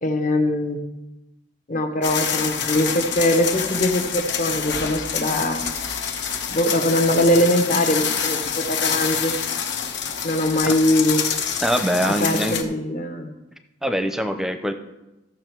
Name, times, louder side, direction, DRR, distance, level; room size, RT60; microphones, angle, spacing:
voice 1, 0.0-0.8 1.7-5.6 6.5-9.4 10.2-11.3 12.0-13.3, left 1 dB, 45° left, 6 dB, 1.1 m, -22 dB
sound 1, 2.0-12.6, left 7 dB, 65° left, 0.9 m, -26 dB
voice 2, 11.6-12.6 13.8-14.7, equal, 5° right, 8 dB, 0.6 m, -23 dB
14.5 x 6.2 x 4.6 m, 1.0 s
head